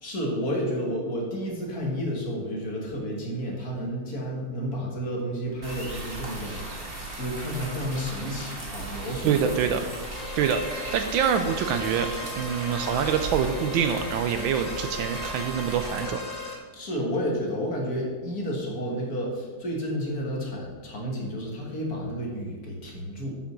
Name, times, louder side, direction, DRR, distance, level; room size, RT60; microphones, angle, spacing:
voice 1, 0.0-9.7 16.7-23.3, equal, 45° left, -1 dB, 2.1 m, -31 dB
sound 1, 5.6-16.0, right 2 dB, 25° right, 1.9 m, -37 dB
voice 2, 9.2-9.8 10.4-12.1 12.4-16.2, right 8 dB, 75° right, 8 dB, 1.2 m, -25 dB
sound 2, 10.1-16.5, left 2 dB, 25° left, 1.1 m, -37 dB
8.2 x 6.0 x 6.1 m, 1.4 s
omnidirectional pair, 2.4 m